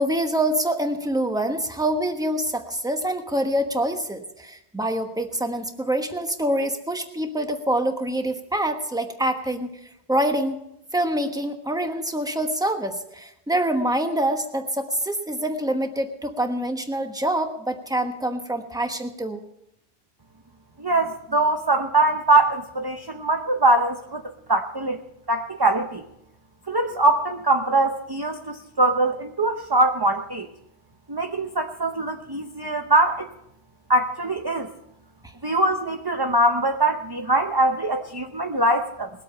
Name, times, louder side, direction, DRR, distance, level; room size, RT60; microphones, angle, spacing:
voice 1, 0.0-9.7 10.1-10.6 10.9-19.4, right 1 dB, 5° right, 5 dB, 1.1 m, -25 dB
voice 2, 20.8-24.2 24.5-25.0 25.3-26.0 26.7-30.5 31.1-33.3 33.9-34.7 35.4-39.1, right 2 dB, 25° right, 4 dB, 0.8 m, -22 dB
20.5 x 8.3 x 5.5 m, 0.80 s
omnidirectional pair, 1.1 m